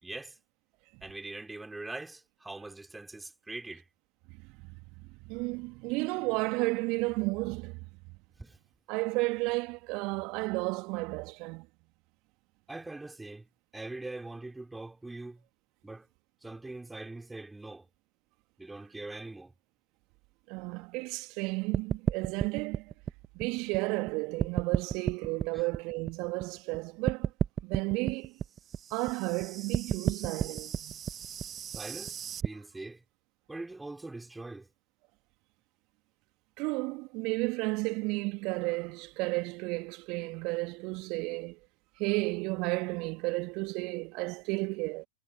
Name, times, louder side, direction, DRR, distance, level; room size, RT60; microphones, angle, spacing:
voice 1, 0.0-0.4 1.0-3.8 8.4-8.6 12.7-15.4 15.8-16.1 16.4-17.9 18.6-19.5 25.5-25.6 31.7-33.0 33.5-34.7, right 2 dB, 5° right, 5.8 m, -42 dB
voice 2, 5.2-7.8 8.9-11.6 20.5-22.9 23.3-27.3 27.6-28.3 28.9-31.0 36.6-41.6 42.0-45.1, right 26 dB, 45° right, 2.7 m, -32 dB
sound 1, 21.7-24.1 24.4-26.8 27.1-32.5, right 8 dB, 25° right, 1.9 m, -32 dB
figure-of-eight pair, 95°, 0 cm